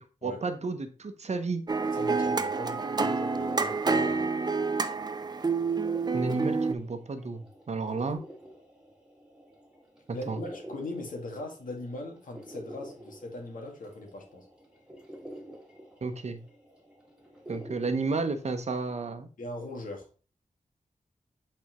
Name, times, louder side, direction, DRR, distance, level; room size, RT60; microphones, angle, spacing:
voice 1, 0.2-1.6 6.1-8.2 10.3-10.4 16.0-16.4 17.5-19.3, right 3 dB, 55° right, 0.9 m, -32 dB
sound 1, 1.7-6.7, right 4 dB, 30° right, 0.5 m, -28 dB
voice 2, 1.9-4.3 10.1-14.5 19.4-20.1, left 2 dB, 80° left, 1.9 m, -40 dB
sound 2, 3.3-19.1, right 1 dB, 5° right, 1.8 m, -49 dB
8.5 x 4.3 x 3.1 m
wide cardioid pair, 115°, 14 cm